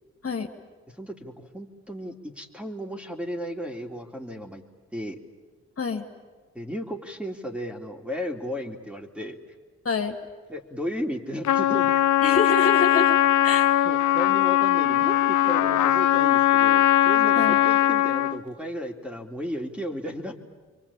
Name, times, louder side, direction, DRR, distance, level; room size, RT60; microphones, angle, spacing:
voice 1, 1.0-4.6 4.9-5.2 6.5-9.4 10.5-11.9 13.8-20.4, equal, 5° right, 2 dB, 3.5 m, -34 dB
voice 2, 9.8-10.2 12.2-13.1 13.4-13.7 17.3-17.6, left 4 dB, 45° left, 2 dB, 2.8 m, -26 dB
Trumpet, 11.4-18.4, left 13 dB, 70° left, 0.8 m, -20 dB
28.5 x 23.5 x 8.8 m, 1.4 s
hypercardioid pair, 40°, 31 cm